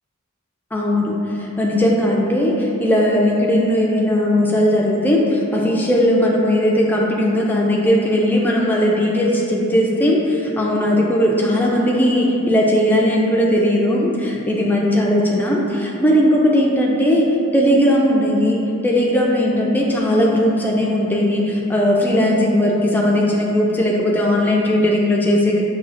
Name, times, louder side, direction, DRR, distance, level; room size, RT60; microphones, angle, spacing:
voice 1, 0.7-17.3 17.5-25.6, equal, 10° left, -3 dB, 0.3 m, -18 dB
6.1 x 2.4 x 2.5 m, 2.7 s
head